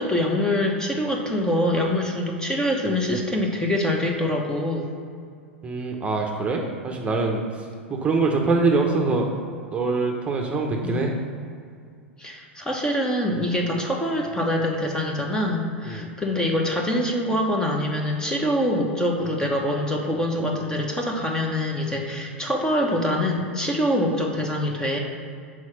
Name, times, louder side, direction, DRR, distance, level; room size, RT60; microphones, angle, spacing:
voice 1, 0.0-4.9 10.8-11.1 12.2-25.0, left 1 dB, 10° left, 1 dB, 1.1 m, -24 dB
voice 2, 5.6-9.3 9.7-11.1 15.8-16.1, right 3 dB, 20° right, 1 dB, 1.0 m, -24 dB
6.2 x 4.9 x 5.8 m, 2.2 s
figure-of-eight pair, 90°, 7 cm